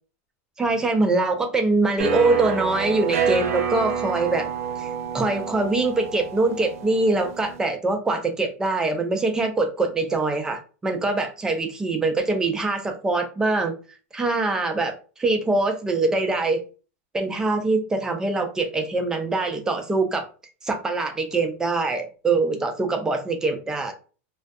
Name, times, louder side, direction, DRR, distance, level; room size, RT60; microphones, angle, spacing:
voice 1, 0.6-4.5 4.8-4.9 5.1-13.7 14.1-14.9 15.2-16.6 17.1-20.3 20.6-23.9, right 3 dB, 10° right, 5 dB, 0.4 m, -23 dB
sound 1, 2.0-7.6, right 6 dB, 85° right, 0.5 m, -28 dB
2.3 x 2.2 x 2.5 m, 0.35 s
supercardioid pair, 155°, 8 cm